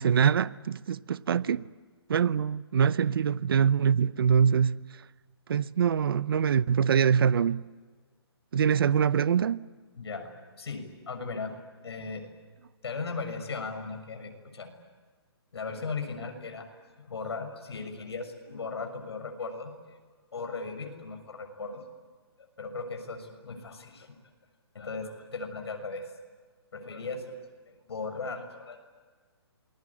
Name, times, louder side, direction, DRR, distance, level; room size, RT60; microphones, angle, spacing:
voice 1, 0.0-1.6 2.1-4.8 5.5-7.6 8.5-9.6, right 7 dB, 60° right, 0.7 m, -24 dB
voice 2, 10.0-10.3 10.6-12.2 12.8-14.7 15.5-16.7 17.0-20.0 20.3-21.8 22.4-24.2 24.7-26.1 26.7-27.3 27.6-28.9, left 4 dB, 70° left, 6.7 m, -37 dB
28.0 x 22.0 x 8.6 m
hypercardioid pair, 165°, 14 cm